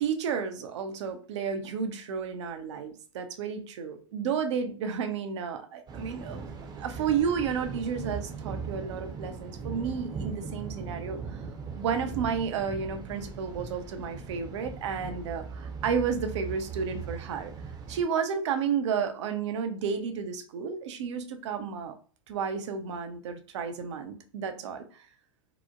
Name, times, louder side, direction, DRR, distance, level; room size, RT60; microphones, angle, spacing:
voice 1, 0.0-11.4 11.7-17.5 17.9-22.0 22.3-25.1, right 6 dB, 65° right, 7 dB, 0.6 m, -32 dB
Thunder, 5.9-18.0, right 5 dB, 25° right, 0.7 m, -39 dB
2.9 x 2.0 x 2.3 m, 0.40 s
hypercardioid pair, 100°, 16 cm